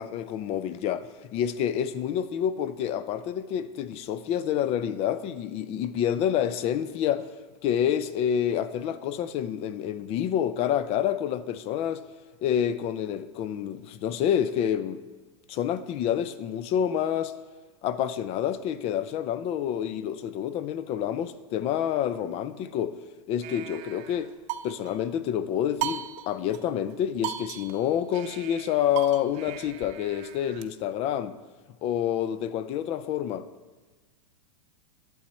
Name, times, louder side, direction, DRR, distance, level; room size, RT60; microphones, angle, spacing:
voice 1, 0.0-7.3 7.6-12.0 12.4-15.0 15.5-17.3 17.8-23.0 23.3-24.3 24.6-31.4 31.8-33.5, left 9 dB, 35° left, 0.5 m, -28 dB
sound 1, 23.4-25.1 25.8-26.6 26.9-27.0 27.2-30.6, right 11 dB, 40° right, 0.7 m, -37 dB
11.5 x 7.8 x 4.3 m
hypercardioid pair, 130°, 18 cm